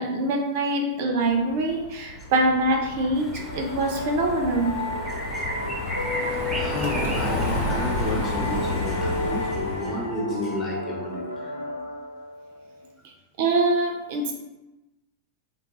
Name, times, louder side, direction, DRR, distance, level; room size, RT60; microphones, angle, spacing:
voice 1, 0.0-4.8 13.4-14.3, right 2 dB, 50° right, 2 dB, 0.5 m, -24 dB
Car passing by, 1.5-10.1, left 1 dB, 55° left, 0.9 m, -31 dB
sound 1, 3.2-8.4, right 1 dB, 5° right, 0.6 m, -37 dB
sound 2, 3.5-12.9, left 2 dB, 80° left, 0.3 m, -33 dB
voice 2, 6.1-11.6, left 1 dB, 20° left, -3 dB, 0.9 m, -32 dB
3.8 x 2.3 x 2.8 m, 1.0 s
figure-of-eight pair, 90°, 0 cm